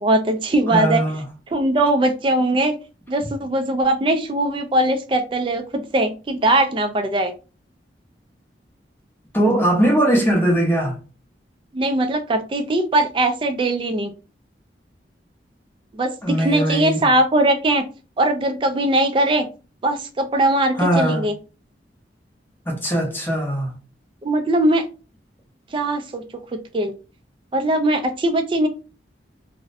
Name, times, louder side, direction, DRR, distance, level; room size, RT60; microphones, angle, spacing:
voice 1, 0.0-1.0 1.5-2.7 3.1-7.3 11.7-14.1 16.0-17.8 18.2-19.5 19.8-21.3 24.2-24.8 25.7-26.2 26.7-26.9 27.5-28.7, right 1 dB, 30° right, 0.3 m, -20 dB
voice 2, 0.7-1.2 9.3-11.0 16.2-17.1 20.8-21.2 22.7-23.7, right 1 dB, 10° left, 0.7 m, -20 dB
2.6 x 2.0 x 2.5 m
head